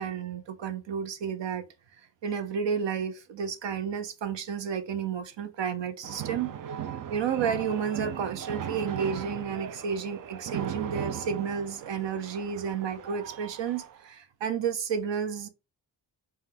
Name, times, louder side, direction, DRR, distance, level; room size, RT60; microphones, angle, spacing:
voice 1, 0.0-1.7 2.2-6.5 7.1-15.5, right 7 dB, 70° right, 0.8 m, -31 dB
sound 1, 6.0-14.1, right 9 dB, 45° right, 0.5 m, -38 dB
4.4 x 2.2 x 3.8 m
cardioid pair, 60°, 45 cm